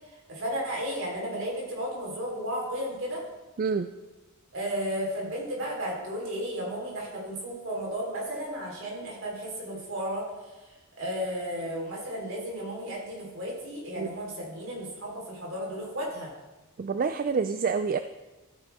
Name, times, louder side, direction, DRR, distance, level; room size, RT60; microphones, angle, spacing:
voice 1, 0.3-3.2 4.5-10.3 11.0-16.3, equal, 65° right, -3 dB, 3.8 m, -33 dB
voice 2, 16.8-18.0, right 5 dB, 40° right, 10 dB, 0.3 m, -27 dB
13.5 x 9.1 x 3.5 m, 1.1 s
head